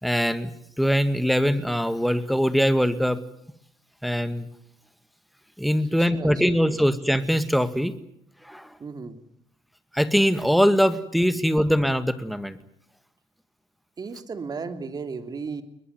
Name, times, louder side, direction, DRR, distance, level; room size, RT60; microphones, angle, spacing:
voice 1, 0.0-0.5 0.8-3.2 4.0-4.5 5.6-7.9 8.4-8.7 9.9-12.6, equal, ahead, 11 dB, 2.0 m, -22 dB
voice 2, 6.0-6.7 8.8-9.2 14.0-15.6, right 5 dB, 40° right, 9 dB, 2.9 m, -35 dB
21.5 x 21.0 x 9.6 m, 0.72 s
cardioid pair, 80°, 10 cm